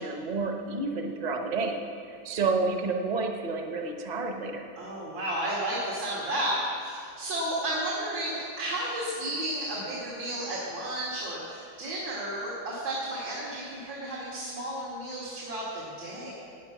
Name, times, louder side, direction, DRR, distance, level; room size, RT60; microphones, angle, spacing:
voice 1, 0.0-1.8 2.1-4.7, right 3 dB, 30° right, 3 dB, 1.0 m, -30 dB
voice 2, 4.8-16.3, right 1 dB, 75° right, -6 dB, 3.0 m, -32 dB
17.0 x 9.7 x 6.0 m, 2.4 s
omnidirectional pair, 2.1 m